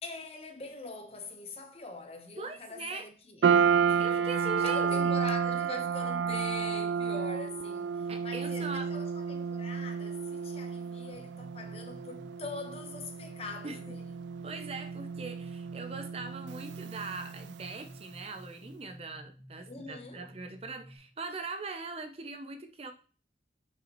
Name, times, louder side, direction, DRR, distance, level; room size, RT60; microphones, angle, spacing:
voice 1, 0.0-4.0 4.6-14.2 19.7-20.2, left 3 dB, 35° left, 1.0 m, -43 dB
voice 2, 2.4-3.1 4.0-5.2 8.1-8.9 13.6-13.8 14.4-22.9, right 3 dB, 35° right, 0.6 m, -41 dB
sound 1, 3.4-17.8, right 6 dB, 80° right, 0.4 m, -31 dB
sound 2, 11.1-21.0, equal, 55° right, 2.2 m, -52 dB
6.7 x 5.7 x 3.0 m
head